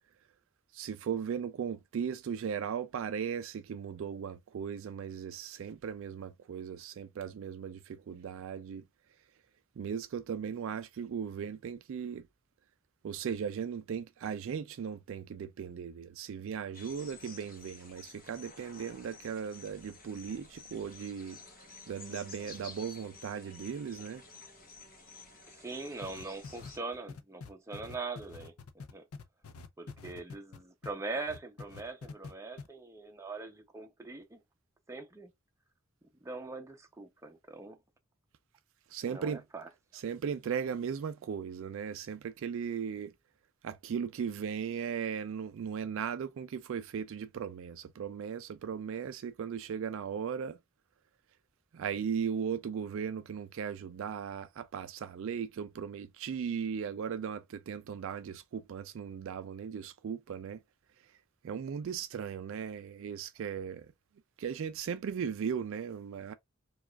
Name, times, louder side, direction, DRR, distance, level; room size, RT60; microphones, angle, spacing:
voice 1, 0.7-8.8 9.8-12.3 13.0-21.4 21.9-24.2 38.9-39.4 39.9-43.1 43.6-50.6 51.7-60.6 61.4-63.9 64.4-66.3, right 7 dB, 60° right, 0.3 m, -37 dB
sound 1, 16.7-26.8, left 4 dB, 40° left, 1.0 m, -52 dB
voice 2, 25.5-29.1 29.8-34.4 34.9-35.3 36.2-37.8 39.1-39.7, right 3 dB, 15° right, 0.6 m, -42 dB
sound 2, 26.0-30.9 31.3-32.3 32.6-32.7, left 4 dB, 80° left, 0.5 m, -46 dB
4.6 x 2.3 x 2.3 m
head